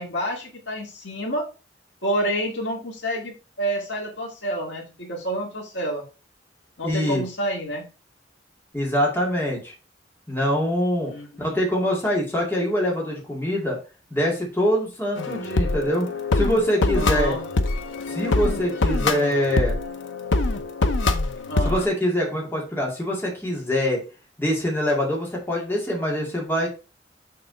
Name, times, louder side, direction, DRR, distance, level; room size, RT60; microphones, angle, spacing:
voice 1, 0.0-1.5 2.0-6.0 6.8-7.8 11.0-11.6 16.9-17.4 21.5-21.8, right 1 dB, 75° left, -1 dB, 2.2 m, -29 dB
voice 2, 6.8-7.2 8.7-9.7 10.3-11.1 11.4-13.8 14.1-17.3 18.1-19.8 21.6-24.0 24.4-26.7, equal, 10° left, -3 dB, 2.1 m, -24 dB
sound 1, 15.2-21.9, left 2 dB, 90° left, 0.7 m, -24 dB
6.7 x 3.9 x 5.0 m, 0.32 s
head